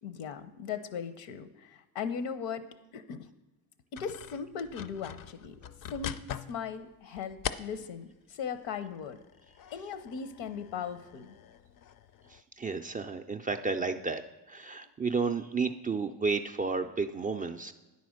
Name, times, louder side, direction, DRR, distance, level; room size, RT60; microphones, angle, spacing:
voice 1, 0.0-2.7 2.9-3.3 3.9-5.6 5.9-9.2 9.7-11.3, left 6 dB, 80° left, 12 dB, 0.8 m, -38 dB
sound 1, 4.0-8.1 8.6-12.4, left 9 dB, 50° left, 0.5 m, -43 dB
voice 2, 12.3-14.2 14.5-17.7, right 4 dB, 20° right, 6 dB, 0.3 m, -32 dB
9.3 x 4.2 x 6.3 m, 1.1 s
supercardioid pair, 75°, 45 cm